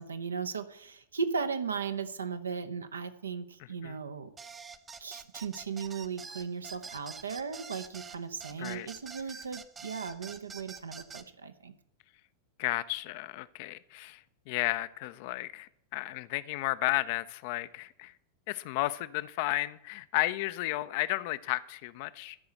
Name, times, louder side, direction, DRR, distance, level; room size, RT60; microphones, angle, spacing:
voice 1, 0.0-4.3 5.0-11.7, right 6 dB, 75° right, 1.0 m, -37 dB
sound 1, 4.4-11.3, right 5 dB, 20° right, 0.8 m, -46 dB
voice 2, 12.6-14.2 14.5-18.1 18.5-22.4, left 18 dB, 50° left, 0.6 m, -33 dB
12.5 x 5.8 x 7.8 m
figure-of-eight pair, 90°, 0 cm